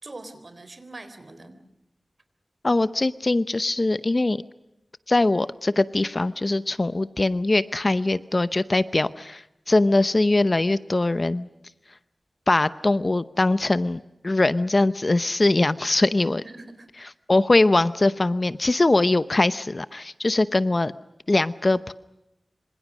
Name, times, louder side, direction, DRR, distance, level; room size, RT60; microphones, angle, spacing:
voice 1, 0.0-1.6 16.4-16.9, right 2 dB, 45° right, 10 dB, 3.8 m, -42 dB
voice 2, 2.6-4.4 5.1-11.5 12.5-16.4 17.3-20.9 21.3-21.9, left 2 dB, 40° left, 14 dB, 0.8 m, -22 dB
26.5 x 26.0 x 6.2 m, 0.91 s
wide cardioid pair, 85°, 0 cm